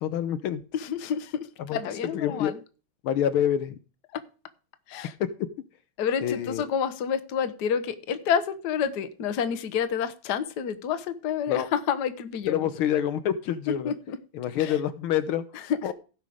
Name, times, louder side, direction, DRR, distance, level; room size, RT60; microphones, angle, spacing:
voice 1, 0.0-0.6 1.7-1.8 2.1-2.5 3.0-3.8 5.2-5.3 6.2-6.6 11.5-11.7 12.5-13.9 14.3-15.4 15.8-15.9, left 10 dB, 80° left, 11 dB, 1.7 m, -26 dB
voice 2, 0.7-2.6 4.1-4.2 4.9-5.1 6.0-12.7 13.7-14.2 14.6-14.8 15.5-15.9, left 7 dB, 60° left, 11 dB, 1.4 m, -29 dB
16.5 x 5.7 x 5.0 m, 0.35 s
omnidirectional pair, 2.3 m